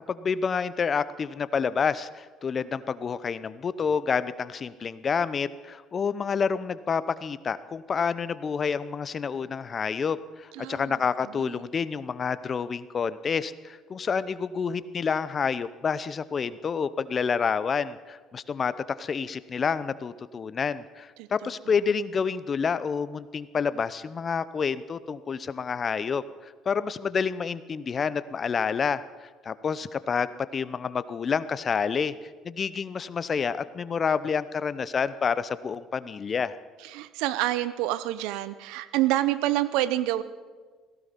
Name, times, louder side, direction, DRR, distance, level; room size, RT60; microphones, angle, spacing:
voice 1, 0.1-32.1 32.4-36.5, left 6 dB, 40° left, 16 dB, 0.7 m, -28 dB
voice 2, 10.5-11.6 21.2-21.5 36.8-40.2, right 14 dB, 75° right, 15 dB, 0.7 m, -28 dB
17.0 x 15.5 x 5.3 m, 1.4 s
supercardioid pair, 70°, 0 cm